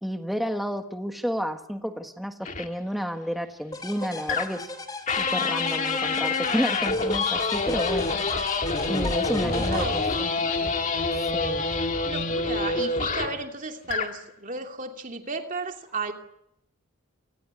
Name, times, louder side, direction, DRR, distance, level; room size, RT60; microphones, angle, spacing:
voice 1, 0.0-4.7 5.2-8.1 8.9-10.5 11.3-11.7, equal, ahead, 6 dB, 1.4 m, -31 dB
sound 1, 2.5-2.7 4.3-4.7 5.1-13.4 13.8-14.2, left 3 dB, 35° left, 2.0 m, -27 dB
sound 2, 3.7-10.6, left 2 dB, 15° left, 3.1 m, -38 dB
voice 2, 9.5-10.8 12.1-16.1, right 3 dB, 35° right, 4 dB, 2.7 m, -34 dB
28.5 x 20.0 x 8.5 m, 0.77 s
head